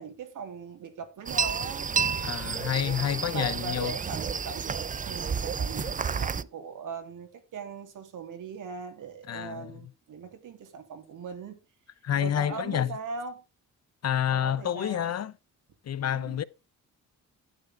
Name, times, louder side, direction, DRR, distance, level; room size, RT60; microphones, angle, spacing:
voice 1, 0.0-1.9 2.7-11.6 12.2-13.4 14.3-15.2 16.1-16.5, right 5 dB, 75° right, 3.0 m, -40 dB
sound 1, 1.3-6.4, right 6 dB, 25° right, 0.5 m, -30 dB
voice 2, 2.2-4.0 9.3-9.7 12.0-12.9 14.0-15.3 15.9-16.4, left 10 dB, 55° left, 0.8 m, -28 dB
12.0 x 8.5 x 3.7 m
cardioid pair, 105°, 32 cm